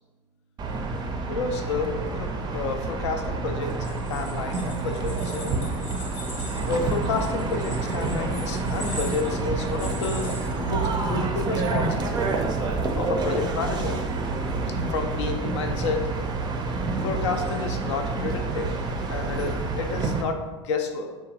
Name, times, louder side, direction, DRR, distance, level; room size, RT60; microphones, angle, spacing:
sound 1, 0.6-20.2, right 3 dB, 30° right, 0.4 m, -28 dB
voice 1, 1.3-5.5 6.7-12.4 13.0-14.0 14.7-16.1 17.0-18.7 19.1-21.1, left 4 dB, 75° left, 5 dB, 0.4 m, -30 dB
sound 2, 3.7-11.1, left 1 dB, 90° left, 0.9 m, -41 dB
3.0 x 2.2 x 2.8 m, 1.3 s
hypercardioid pair, 85°, 15 cm